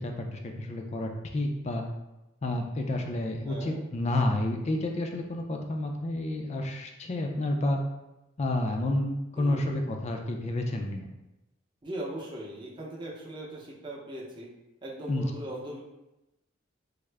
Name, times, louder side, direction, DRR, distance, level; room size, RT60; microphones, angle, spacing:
voice 1, 0.0-1.8 2.4-7.8 8.4-11.1 15.1-15.3, left 1 dB, 35° left, 3 dB, 0.4 m, -30 dB
voice 2, 3.5-3.8 9.4-9.8 11.8-14.5 14.8-15.8, right 1 dB, 25° right, -4 dB, 0.6 m, -39 dB
3.5 x 2.0 x 3.3 m, 0.95 s
head